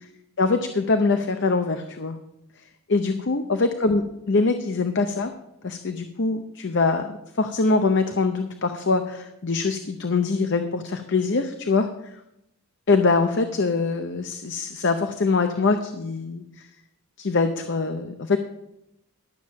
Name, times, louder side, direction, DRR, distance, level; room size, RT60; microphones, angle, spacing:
voice 1, 0.4-2.2 2.9-5.3 5.6-11.9 12.9-16.4 17.2-18.4, left 3 dB, 55° left, 7 dB, 0.7 m, -23 dB
11.5 x 7.2 x 6.3 m, 0.85 s
head